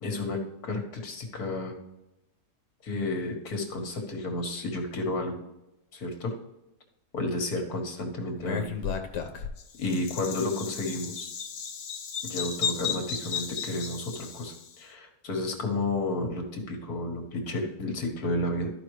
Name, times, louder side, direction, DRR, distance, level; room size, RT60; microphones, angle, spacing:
voice 1, 0.0-1.7 2.8-5.3 5.9-6.3 7.1-8.7 9.8-11.3 12.2-18.7, left 2 dB, 65° left, 3 dB, 2.0 m, -31 dB
Bird vocalization bird call bird song, 8.4-14.7, left 7 dB, 85° left, 1.6 m, -34 dB
13.0 x 5.3 x 3.2 m, 0.90 s
omnidirectional pair, 1.7 m